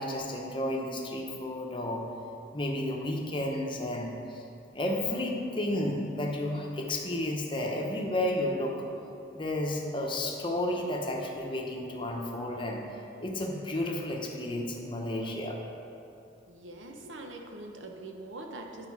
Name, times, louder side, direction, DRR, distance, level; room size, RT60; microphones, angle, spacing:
voice 1, 0.0-2.0 2.5-4.4 4.7-8.8 9.3-12.8 13.2-15.6, left 1 dB, 25° left, 0 dB, 0.8 m, -32 dB
voice 2, 16.5-18.9, right 2 dB, 80° right, 3 dB, 0.8 m, -43 dB
9.3 x 4.9 x 4.7 m, 2.7 s
head